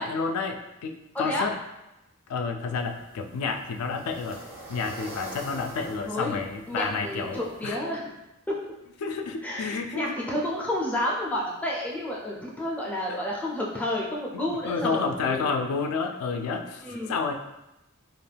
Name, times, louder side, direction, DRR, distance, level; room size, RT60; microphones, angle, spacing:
voice 1, 0.0-1.6 2.3-4.4 4.7-7.8 9.0-10.2 13.1-13.2 14.3-17.3, left 4 dB, 90° left, 5 dB, 0.3 m, -30 dB
sound 1, 2.7-7.7, right 1 dB, 80° right, 0.9 m, -44 dB
voice 2, 6.0-6.4 6.7-8.2 8.5-8.6 9.4-15.4 16.8-17.1, left 1 dB, 5° left, -3 dB, 0.3 m, -30 dB
2.4 x 2.2 x 3.2 m, 0.93 s
head